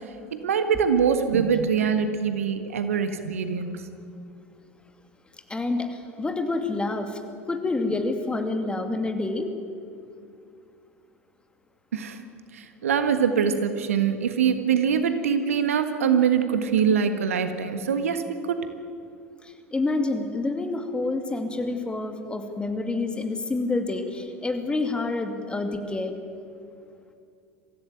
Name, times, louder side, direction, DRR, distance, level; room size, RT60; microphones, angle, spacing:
voice 1, 0.3-3.8 11.9-12.2 12.5-18.6, right 7 dB, 70° right, 9 dB, 1.5 m, -23 dB
voice 2, 5.5-7.2 7.5-9.5 19.4-26.1, left 2 dB, 15° left, 6 dB, 2.4 m, -28 dB
24.0 x 15.5 x 9.2 m, 2.5 s
figure-of-eight pair, 75°, 8 cm